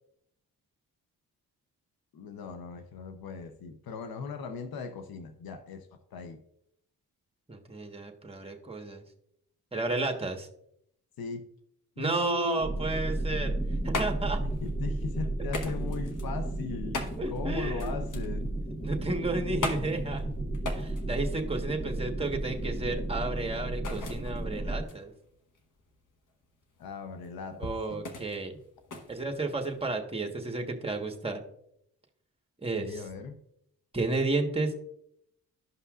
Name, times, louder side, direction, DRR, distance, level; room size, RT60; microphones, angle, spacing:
voice 1, 2.1-6.4 11.2-11.5 12.0-12.6 14.4-17.0 17.3-18.5 26.8-28.0 32.7-33.4, left 5 dB, 75° left, 7 dB, 0.8 m, -38 dB
voice 2, 7.5-9.0 9.7-10.5 12.0-13.5 13.8-14.4 17.2-18.0 18.8-20.2 20.7-25.1 27.6-28.6 29.1-31.4 32.6-33.0 33.9-34.8, right 3 dB, 15° right, 3 dB, 1.3 m, -32 dB
sound 1, 12.6-24.8, right 2 dB, 15° left, 1.6 m, -33 dB
sound 2, 13.4-30.0, left 3 dB, 55° left, 1.2 m, -41 dB
12.5 x 5.5 x 2.4 m, 0.73 s
cardioid pair, 65°, 36 cm